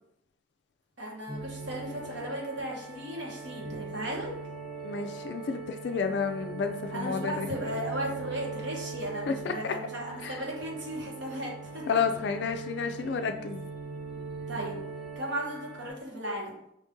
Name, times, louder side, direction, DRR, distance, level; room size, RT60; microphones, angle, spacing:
voice 1, 1.0-4.3 6.9-12.0 14.5-14.8 15.2-16.6, right 1 dB, 70° right, -2 dB, 1.4 m, -36 dB
sound 1, 1.3-15.9, right 4 dB, 25° right, 0.6 m, -40 dB
voice 2, 4.8-7.5 9.3-9.7 10.2-10.4 11.9-13.6, left 5 dB, 60° left, 6 dB, 0.3 m, -31 dB
5.3 x 2.6 x 3.6 m, 0.75 s
head